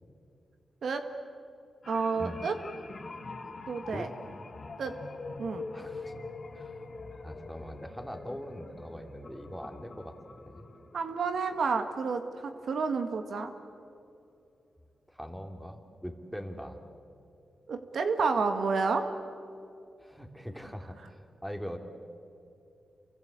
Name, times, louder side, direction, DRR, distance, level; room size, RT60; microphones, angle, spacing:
sound 1, 1.8-12.6 13.0-13.1, left 3 dB, 50° left, 2.0 m, -45 dB
voice 1, 1.9-2.5 3.7-4.1 4.8-4.9 5.4-5.6 10.9-13.5 17.7-19.0, right 4 dB, 75° right, 7 dB, 1.9 m, -30 dB
voice 2, 5.7-6.1 6.5-10.7 15.1-16.8 20.0-21.8, equal, ahead, 5 dB, 3.0 m, -42 dB
28.5 x 23.5 x 8.4 m, 2.6 s
cardioid pair, 65°, 0 cm